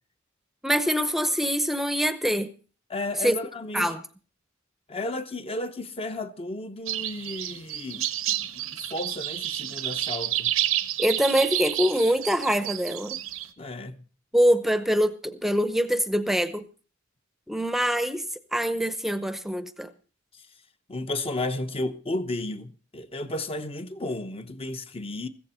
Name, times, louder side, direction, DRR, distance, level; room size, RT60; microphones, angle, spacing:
voice 1, 0.6-2.5 3.2-3.4 3.7-4.0 11.0-13.2 14.3-16.7 17.5-18.3 18.5-19.9, equal, ahead, 0.7 m, -24 dB
voice 2, 2.9-4.0 4.9-8.1 8.3-10.5 13.6-14.0 20.9-25.3, left 2 dB, 30° left, 0.8 m, -33 dB
sound 1, 6.9-13.5, right 13 dB, 90° right, 1.0 m, -30 dB
15.5 x 14.5 x 4.3 m
head